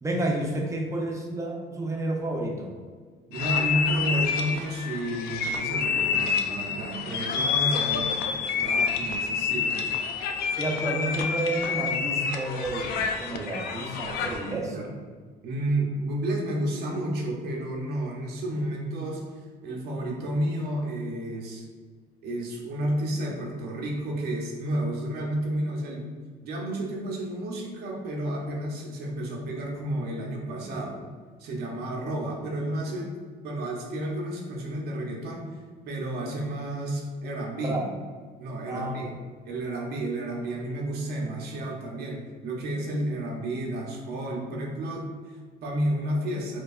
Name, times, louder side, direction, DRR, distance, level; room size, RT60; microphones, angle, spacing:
voice 1, 0.0-2.7 10.6-14.8 37.6-37.8 38.7-39.1, right 1 dB, 20° right, 0 dB, 0.6 m, -30 dB
sound 1, 3.3-14.5, left 6 dB, 70° left, 0.4 m, -28 dB
voice 2, 3.3-9.8 14.7-14.9 15.4-19.2 19.6-21.7 22.2-26.0 26.4-31.0 31.4-33.1 33.4-35.6 35.9-37.8 38.4-39.1 39.4-46.6, right 1 dB, 70° right, -1 dB, 0.7 m, -31 dB
4.4 x 2.3 x 2.4 m, 1.5 s
cardioid pair, 110°, 17 cm